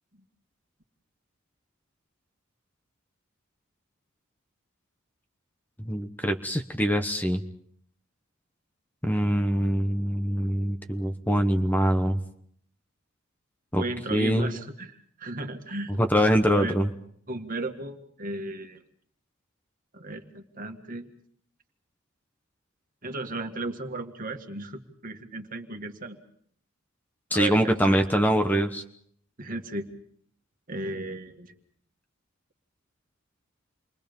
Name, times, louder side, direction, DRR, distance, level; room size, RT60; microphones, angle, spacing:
voice 1, 5.8-7.4 9.0-12.2 13.7-13.8 14.1-14.6 16.0-16.9 27.3-28.8, equal, 10° left, 6 dB, 1.0 m, -24 dB
voice 2, 13.8-16.0 16.5-16.7 17.3-18.8 19.9-21.1 23.0-26.2 27.3-28.0 29.4-29.9 30.7-31.5, right 2 dB, 40° right, 5 dB, 2.0 m, -35 dB
29.0 x 22.5 x 5.4 m, 0.65 s
head